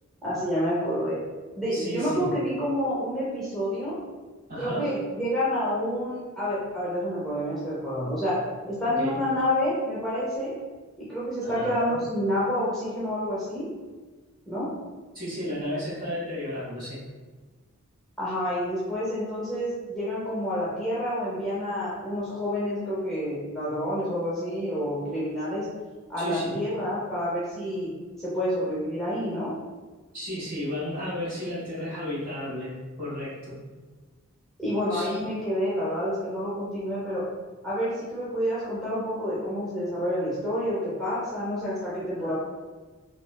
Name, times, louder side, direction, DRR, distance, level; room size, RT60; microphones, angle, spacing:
voice 1, 0.2-1.2 1.5-4.0 4.6-8.4 8.7-10.5 11.0-13.7 14.5-14.7 18.2-25.7 26.1-27.9 28.2-29.5 34.6-37.2 37.6-42.3, equal, ahead, -9 dB, 0.6 m, -28 dB
voice 2, 1.7-2.3 4.5-4.9 9.0-9.2 11.4-12.0 15.1-17.0 26.2-26.5 30.1-32.7 33.0-33.3 34.9-35.1, left 1 dB, 40° right, -9 dB, 1.4 m, -33 dB
3.1 x 2.7 x 2.2 m, 1.4 s
head